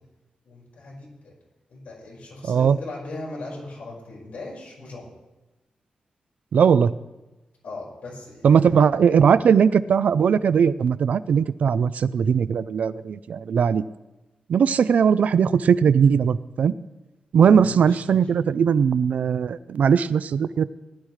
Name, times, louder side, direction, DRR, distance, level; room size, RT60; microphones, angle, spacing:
voice 1, 0.4-1.3 1.7-5.1 7.6-9.3 17.4-18.2, left 2 dB, 85° left, -3 dB, 5.3 m, -38 dB
voice 2, 2.4-2.8 6.5-6.9 8.4-13.8 14.5-16.7 17.3-20.6, right 7 dB, 75° right, 16 dB, 0.4 m, -19 dB
19.0 x 11.5 x 3.2 m, 1.1 s
wide cardioid pair, 125°, 3 cm